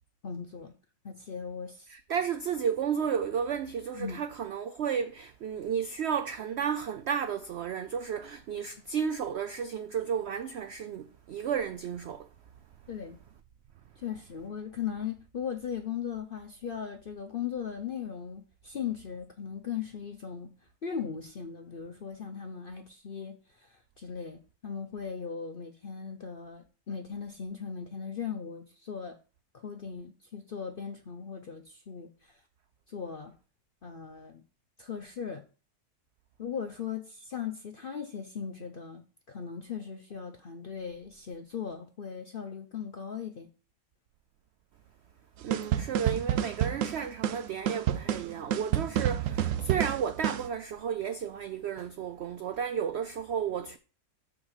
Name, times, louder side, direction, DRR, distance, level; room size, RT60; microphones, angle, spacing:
voice 1, 0.2-0.7 1.0-1.9 3.9-4.2 12.9-13.2 14.0-20.5 20.8-29.2 29.5-32.4 32.9-33.3 33.8-34.4 34.8-35.4 36.4-43.5, left 7 dB, 55° left, 0.6 m, -38 dB
voice 2, 1.9-12.3 45.4-53.8, right 7 dB, 85° right, 0.5 m, -33 dB
sound 1, 45.5-50.5, right 10 dB, 65° right, 0.9 m, -29 dB
6.1 x 5.0 x 6.5 m
omnidirectional pair, 1.7 m